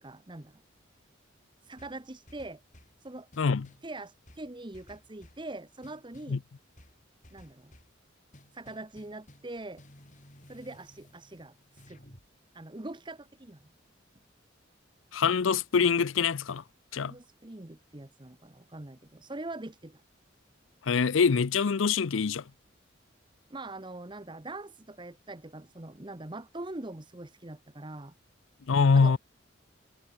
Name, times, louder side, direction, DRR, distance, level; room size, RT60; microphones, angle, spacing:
voice 1, 0.0-0.6 1.6-2.6 3.0-3.3 3.8-6.4 7.3-7.7 8.5-9.8 10.5-12.0 12.5-13.6 17.0-20.0 23.5-28.1 28.9-29.2, right 2 dB, 25° right, 1.0 m, -43 dB
sound 1, 1.8-3.0 3.3-3.9 4.3-5.5 5.8-6.4 6.8-8.0 8.3-9.5 9.8-12.3, left 1 dB, 40° left, 7.1 m, -56 dB
voice 2, 3.4-3.7 6.3-6.4 15.1-16.6 16.9-17.2 20.8-22.4 28.7-29.2, left 5 dB, 80° left, 0.5 m, -24 dB
head